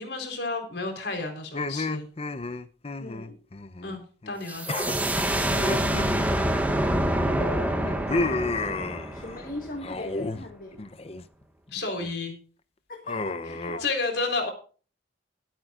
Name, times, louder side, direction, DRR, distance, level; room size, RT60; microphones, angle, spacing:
voice 1, 0.0-2.1 3.8-4.7 11.7-12.4 13.8-14.5, left 3 dB, 65° left, 4 dB, 3.9 m, -31 dB
sound 1, 1.5-4.0 4.2-4.4 4.7-7.0 7.4-9.4 9.8-10.4 10.7-11.2 11.7-12.1 13.1-13.8, left 3 dB, 35° left, 0.7 m, -32 dB
voice 2, 3.0-3.4 7.2-8.5 9.1-10.8 12.9-13.9, left 2 dB, 50° left, 3 dB, 1.6 m, -39 dB
sound 2, 4.5-10.0, right 1 dB, 10° right, 1.5 m, -26 dB
20.5 x 9.0 x 2.5 m, 0.39 s
head